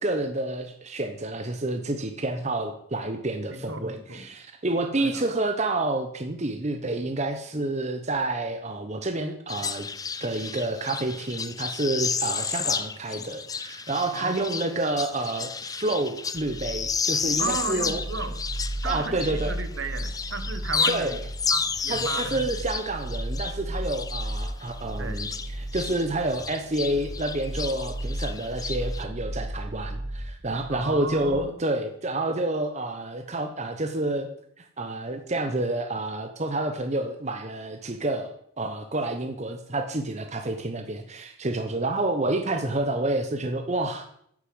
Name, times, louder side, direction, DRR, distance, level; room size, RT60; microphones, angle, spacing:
voice 1, 0.0-9.9 10.2-18.0 18.8-19.6 20.9-21.2 21.9-34.3 34.6-38.3 38.6-44.1, right 2 dB, 30° right, 5 dB, 0.9 m, -29 dB
voice 2, 3.5-4.3 5.0-5.2 14.1-14.6 17.4-18.4 18.8-21.2 21.5-22.4 25.0-25.2 30.7-31.6, right 3 dB, 60° right, 9 dB, 1.3 m, -34 dB
sound 1, 9.5-19.7 20.0-26.1 26.3-29.0, left 6 dB, 15° left, 0.4 m, -32 dB
sound 2, 16.3-31.4, right 1 dB, 65° left, 2.3 m, -35 dB
10.0 x 7.0 x 7.8 m, 0.68 s
head